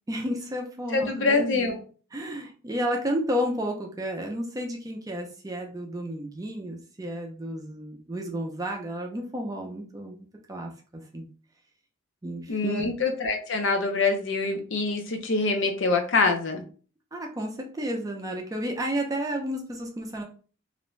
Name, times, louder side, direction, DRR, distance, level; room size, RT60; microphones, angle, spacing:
voice 1, 0.1-1.7 2.1-10.7 11.1-11.2 12.2-12.9 17.1-20.2, equal, 15° right, 1 dB, 0.4 m, -32 dB
voice 2, 0.9-1.8 12.5-16.6, left 3 dB, 65° left, 4 dB, 0.5 m, -25 dB
2.4 x 2.1 x 3.0 m, 0.39 s
head